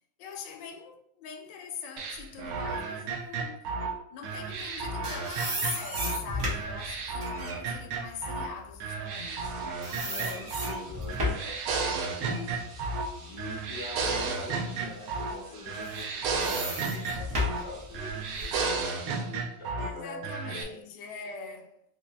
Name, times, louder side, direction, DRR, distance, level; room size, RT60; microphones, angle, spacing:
voice 1, 0.2-3.7 4.1-9.5 19.8-21.8, left 6 dB, 75° left, 1.2 m, -43 dB
sound 1, 2.0-6.2 6.5-8.5 8.8-10.8 11.1-13.1 13.4-15.4 15.7-17.7 17.9-19.9 20.2-20.6, right 4 dB, 80° right, 0.8 m, -33 dB
sound 2, 4.6-9.5 9.8-11.5 12.0-14.0 14.4-14.6 15.6-18.6, left 1 dB, 50° right, 1.2 m, -35 dB
sound 3, 9.3-19.2, right 3 dB, 65° right, 1.4 m, -53 dB
voice 2, 10.0-12.6 13.2-20.8, left 2 dB, 55° left, 0.7 m, -44 dB
4.0 x 3.2 x 2.2 m
omnidirectional pair, 2.1 m